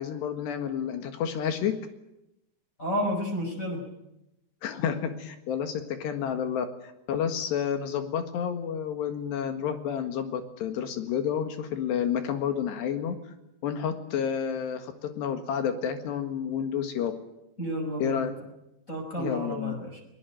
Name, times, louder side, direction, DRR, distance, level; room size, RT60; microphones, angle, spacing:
voice 1, 0.0-1.7 4.6-6.7 7.1-13.2 13.6-17.1 18.0-18.3 19.2-19.7, left 8 dB, 70° left, 7 dB, 3.8 m, -30 dB
voice 2, 2.8-3.8 17.6-18.3 18.9-20.0, equal, 15° left, 0 dB, 5.6 m, -31 dB
22.0 x 21.0 x 9.2 m, 0.88 s
omnidirectional pair, 5.2 m